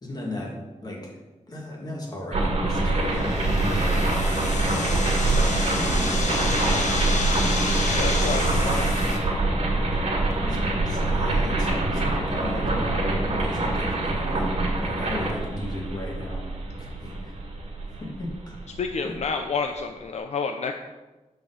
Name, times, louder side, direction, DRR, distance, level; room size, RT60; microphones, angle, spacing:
voice 1, 0.0-1.2 1.5-4.1 5.9-6.9 9.9-10.0 10.4-10.6 10.9-14.4 14.8-16.4 16.8-17.4 18.0-18.6 19.0-19.2, left 1 dB, 35° left, -3 dB, 2.0 m, -35 dB
sound 1, 2.3-19.2, right 2 dB, 60° right, 1.9 m, -25 dB
sound 2, 3.1-9.2, left 3 dB, 85° left, 1.2 m, -30 dB
voice 2, 7.9-8.9 18.8-20.7, left 5 dB, 70° left, 5 dB, 0.5 m, -29 dB
6.0 x 5.2 x 6.6 m, 1.2 s
wide cardioid pair, 155°, 12 cm